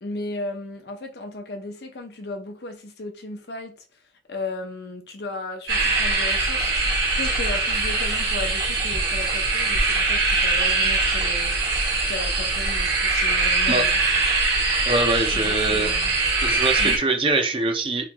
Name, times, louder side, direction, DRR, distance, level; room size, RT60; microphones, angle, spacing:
voice 1, 0.0-3.8 4.3-11.6 12.1-14.0 15.3-16.2 16.8-17.0, left 2 dB, 65° left, 0.7 m, -35 dB
sound 1, 5.7-17.0, right 3 dB, 70° right, 1.4 m, -22 dB
voice 2, 14.9-15.9 16.4-18.1, right 2 dB, 30° right, 0.5 m, -23 dB
3.1 x 2.7 x 3.4 m
head